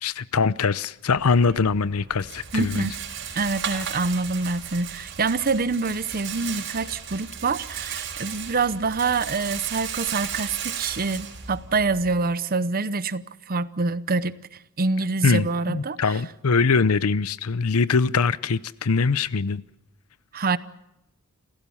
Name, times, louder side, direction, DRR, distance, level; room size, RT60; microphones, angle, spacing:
voice 1, 0.0-2.9 15.2-19.6, left 4 dB, 75° left, 0.7 m, -22 dB
Rattle, 1.1-12.2, right 7 dB, 60° right, 4.1 m, -35 dB
voice 2, 2.5-2.9 3.4-14.3 14.8-16.0 20.3-20.6, right 4 dB, 40° right, 0.8 m, -26 dB
28.0 x 15.5 x 7.1 m
head